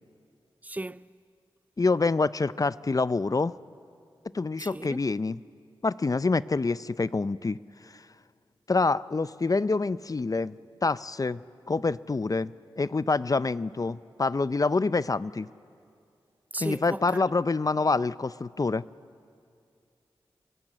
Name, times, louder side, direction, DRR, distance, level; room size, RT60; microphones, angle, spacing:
voice 1, 0.6-1.1 4.6-5.0 16.5-17.2, right 2 dB, 15° right, 0.5 m, -36 dB
voice 2, 1.8-3.5 4.3-5.4 5.8-7.6 7.8-8.0 8.7-10.6 10.8-15.5 16.6-18.8, left 3 dB, 40° left, 0.5 m, -26 dB
29.0 x 16.0 x 7.7 m
cardioid pair, 45°, 10 cm